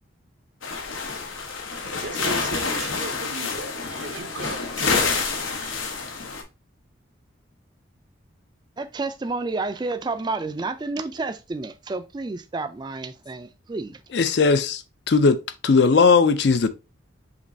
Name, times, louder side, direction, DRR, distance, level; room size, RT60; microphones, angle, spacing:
sound 1, 0.6-6.4, left 4 dB, 90° left, 0.9 m, -28 dB
voice 1, 1.7-5.8, right 3 dB, 75° right, 0.7 m, -37 dB
voice 2, 8.8-14.0, right 3 dB, 20° right, 0.3 m, -30 dB
voice 3, 14.1-16.7, left 4 dB, 55° left, 0.4 m, -18 dB
5.1 x 3.1 x 2.6 m
head